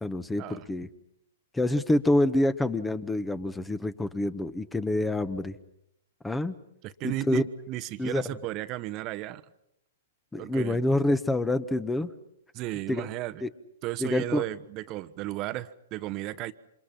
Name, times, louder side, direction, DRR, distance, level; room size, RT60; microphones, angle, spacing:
voice 1, 0.0-0.9 1.5-5.5 6.2-6.5 7.0-7.4 8.0-8.2 10.3-12.1 12.9-13.1 13.4-13.5 14.0-14.4, left 1 dB, 10° left, 13 dB, 1.3 m, -27 dB
voice 2, 6.8-9.4 10.4-10.8 12.5-13.4 13.8-16.5, right 16 dB, 35° right, 12 dB, 1.2 m, -34 dB
29.0 x 26.5 x 5.9 m, 0.78 s
hypercardioid pair, 115°, 0 cm